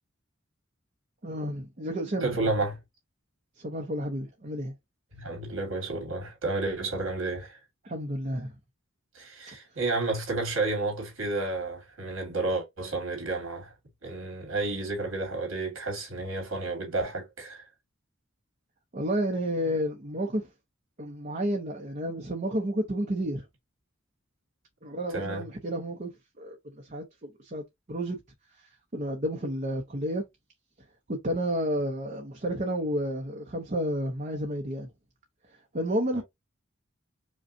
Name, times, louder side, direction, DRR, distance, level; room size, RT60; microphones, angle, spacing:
voice 1, 1.2-2.4 3.6-4.7 7.8-8.5 18.9-20.5 21.0-23.4 24.8-26.1 26.4-28.2 28.9-30.2 31.1-34.9 35.7-36.2, equal, 40° right, 0.8 m, -31 dB
voice 2, 2.2-2.8 5.1-7.6 9.1-13.7 14.0-17.6 25.1-25.4 36.1-36.2, right 2 dB, 85° right, 2.3 m, -31 dB
5.2 x 2.3 x 2.6 m
head